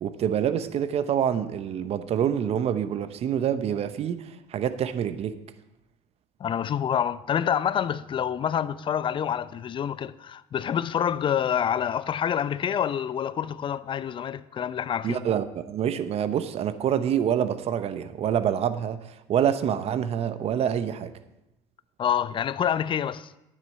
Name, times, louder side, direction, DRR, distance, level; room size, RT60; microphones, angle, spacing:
voice 1, 0.0-5.4 15.0-19.0 19.3-21.1, right 9 dB, 50° right, 0.8 m, -26 dB
voice 2, 6.4-15.2 22.0-23.3, left 9 dB, 35° left, 0.5 m, -27 dB
11.0 x 9.5 x 4.8 m
hypercardioid pair, 75°, 14 cm